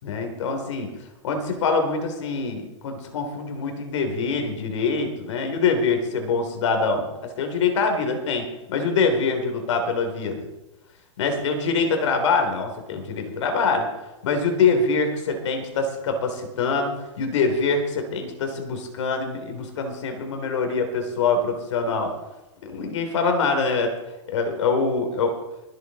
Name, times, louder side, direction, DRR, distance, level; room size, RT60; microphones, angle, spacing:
voice 1, 0.0-0.9 1.2-10.5 11.2-13.9 14.2-22.1 22.6-23.9 24.3-25.3, left 4 dB, 70° left, 5 dB, 3.3 m, -24 dB
23.0 x 7.8 x 4.2 m, 1.0 s
hypercardioid pair, 150°, 16 cm